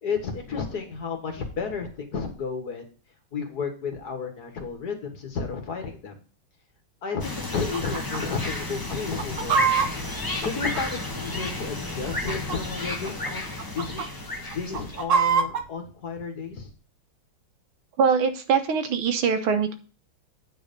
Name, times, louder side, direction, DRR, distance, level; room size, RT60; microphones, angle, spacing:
voice 1, 0.0-2.8 3.3-6.1 7.0-9.8 10.4-13.5 13.7-14.0 14.5-16.7, left 5 dB, 50° left, 4 dB, 1.9 m, -32 dB
sound 1, 7.2-15.0, left 2 dB, 15° left, 0.9 m, -32 dB
Chicken rooster, 7.7-8.2 8.5-8.6 9.0-11.3 12.0-12.8 13.0-13.3 13.6-14.1 14.5-15.6, right 6 dB, 65° right, 0.8 m, -25 dB
voice 2, 18.0-19.7, right 6 dB, 85° right, 8 dB, 1.9 m, -22 dB
9.0 x 4.8 x 5.2 m, 0.38 s
omnidirectional pair, 2.3 m